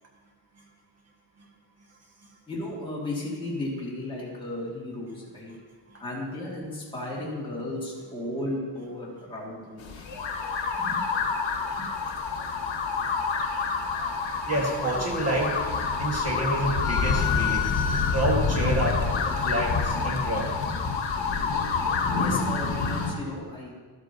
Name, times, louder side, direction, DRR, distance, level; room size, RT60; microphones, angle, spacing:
voice 1, 2.5-5.5 6.0-10.0 10.7-11.0 11.8-11.9 22.2-23.7, left 1 dB, 10° left, -6 dB, 2.0 m, -34 dB
sound 1, 9.8-23.1, left 4 dB, 75° left, 1.1 m, -27 dB
voice 2, 14.5-15.6 16.0-17.7 18.1-19.0 19.3-20.5, right 1 dB, 35° right, -1 dB, 1.5 m, -28 dB
sound 2, 16.8-18.6, left 9 dB, 45° left, 0.6 m, -29 dB
12.5 x 8.0 x 2.7 m, 1.5 s
wide cardioid pair, 135°, 45 cm